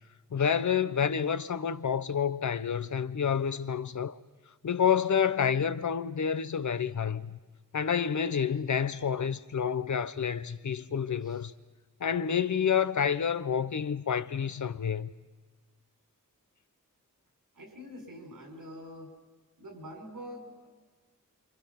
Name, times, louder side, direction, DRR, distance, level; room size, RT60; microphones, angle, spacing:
voice 1, 0.3-4.2 4.6-7.4 7.7-11.5 12.0-15.1, left 7 dB, 65° left, 0.9 m, -29 dB
voice 2, 17.5-19.1 19.6-20.7, equal, 85° right, 6.6 m, -45 dB
28.0 x 26.0 x 6.0 m
wide cardioid pair, 85°, 32 cm